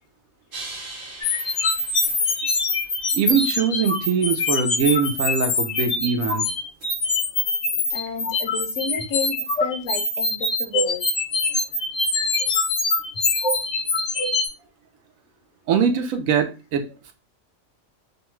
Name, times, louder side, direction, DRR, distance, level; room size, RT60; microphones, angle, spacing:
sound 1, 0.5-3.3 4.4-4.5 6.8-6.9 7.9-8.0, right 2 dB, 45° right, 0.8 m, -40 dB
sound 2, 1.2-14.5, left 3 dB, 85° left, 0.3 m, -24 dB
voice 1, 3.1-6.4 15.7-17.1, right 6 dB, 75° right, 1.0 m, -22 dB
voice 2, 7.9-11.1, left 6 dB, 70° left, 0.9 m, -31 dB
2.7 x 2.2 x 3.0 m
omnidirectional pair, 1.4 m